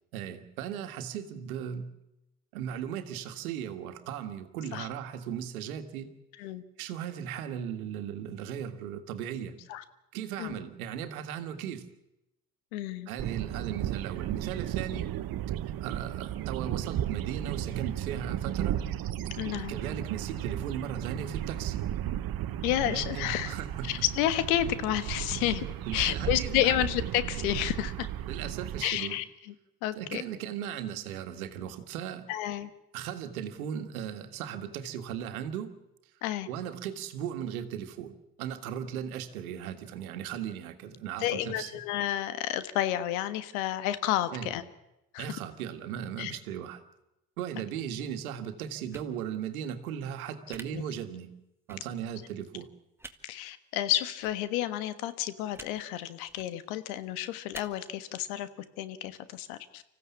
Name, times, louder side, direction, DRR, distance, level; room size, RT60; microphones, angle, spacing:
voice 1, 0.1-1.9 2.5-6.1 6.8-9.6 10.1-11.9 13.1-15.1 15.8-18.8 19.5-21.8 22.9-23.9 25.8-26.8 28.3-29.2 30.0-32.3 32.9-35.7 36.5-41.7 44.3-44.5 45.2-46.8 47.4-51.3 51.7-52.7, right 9 dB, 90° right, 8 dB, 1.8 m, -37 dB
voice 2, 12.7-13.1 19.4-19.7 22.6-23.5 23.8-25.7 25.9-28.1 28.8-29.5 29.8-30.2 32.3-32.7 36.2-36.5 41.2-44.6 45.1-45.3 46.2-46.3 50.7-50.8 53.2-58.5 58.8-59.8, left 13 dB, 85° left, 13 dB, 1.5 m, -30 dB
sound 1, 13.2-28.9, right 11 dB, 55° right, 1.2 m, -34 dB
sound 2, 48.9-49.1 50.5-50.6 51.7-51.8 53.0-53.1 54.2-54.3 55.5-55.7 56.3-56.5 57.5-57.6, right 2 dB, 5° right, 1.9 m, -45 dB
25.0 x 15.5 x 8.5 m, 0.90 s
hypercardioid pair, 65°, 42 cm